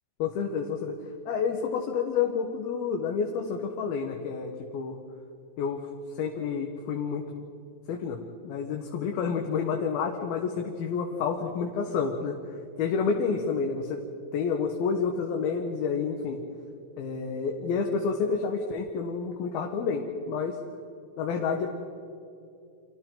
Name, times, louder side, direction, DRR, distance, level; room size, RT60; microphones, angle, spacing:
voice 1, 0.2-0.9 1.3-5.0 5.6-5.8 6.1-7.4 7.9-14.0 14.3-16.4 17.0-20.0 20.3-20.6 21.2-21.7, left 5 dB, 85° left, 2 dB, 3.3 m, -29 dB
30.0 x 26.5 x 3.9 m, 2.6 s
omnidirectional pair, 4.2 m